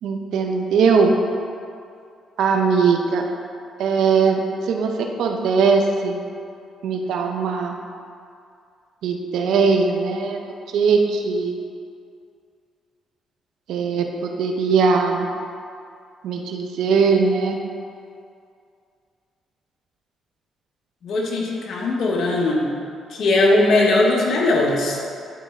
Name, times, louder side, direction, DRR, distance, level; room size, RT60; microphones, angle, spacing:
voice 1, 0.0-1.1 2.4-3.2 3.8-4.4 4.7-6.2 6.8-7.8 9.0-10.4 10.7-11.6 13.7-15.3 16.2-17.6, right 5 dB, 80° right, 3 dB, 0.7 m, -20 dB
voice 2, 21.0-22.7 23.1-25.1, left 2 dB, 65° left, -2 dB, 1.1 m, -19 dB
10.5 x 4.2 x 3.6 m, 2.4 s
cardioid pair, 90°, 0 cm